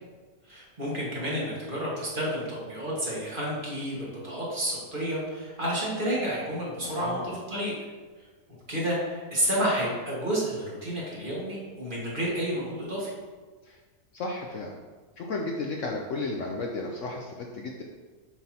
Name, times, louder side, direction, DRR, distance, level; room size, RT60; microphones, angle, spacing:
voice 1, 0.5-7.7 8.7-13.1, equal, 35° right, -6 dB, 1.8 m, -30 dB
voice 2, 6.8-7.3 13.6-13.8 14.1-14.8 15.2-17.8, left 3 dB, 65° left, 1 dB, 0.8 m, -34 dB
7.1 x 6.0 x 2.9 m, 1.4 s
omnidirectional pair, 1.7 m